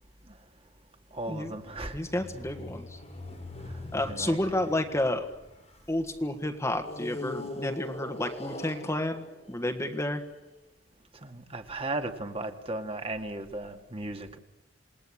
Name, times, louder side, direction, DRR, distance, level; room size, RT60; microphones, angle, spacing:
voice 1, 1.1-2.1 3.6-4.4 11.1-14.4, right 2 dB, 30° right, 5 dB, 2.1 m, -36 dB
sound 1, 1.4-6.0 6.8-10.2, left 1 dB, 35° left, 6.5 m, -42 dB
voice 2, 1.9-3.0 3.9-5.3 5.9-10.2, left 1 dB, 15° left, 6 dB, 1.6 m, -30 dB
28.0 x 20.0 x 8.7 m, 0.97 s
head